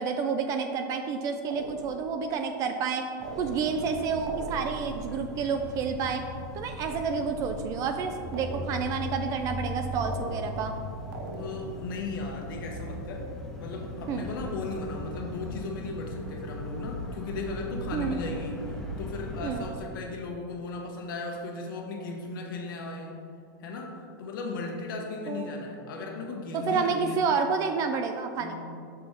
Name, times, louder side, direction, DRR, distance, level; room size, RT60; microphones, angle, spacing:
voice 1, 0.0-3.0 3.4-6.2 6.5-10.7 14.1-14.2 17.9-18.2 19.4-19.6 25.3-25.6 26.5-28.6, right 5 dB, 30° right, 6 dB, 0.3 m, -29 dB
sound 1, 1.5-2.2 3.2-3.9 4.3-5.0 8.3-9.1 10.0-10.8 11.1-11.9, right 3 dB, 75° right, 0.8 m, -41 dB
sound 2, 3.2-19.7, left 1 dB, 5° left, 0.7 m, -38 dB
voice 2, 11.4-13.3 13.6-23.2 23.6-27.2 28.4-28.6, left 3 dB, 75° left, 1 dB, 1.1 m, -36 dB
5.9 x 5.2 x 3.6 m, 2.4 s
supercardioid pair, 150°, 11 cm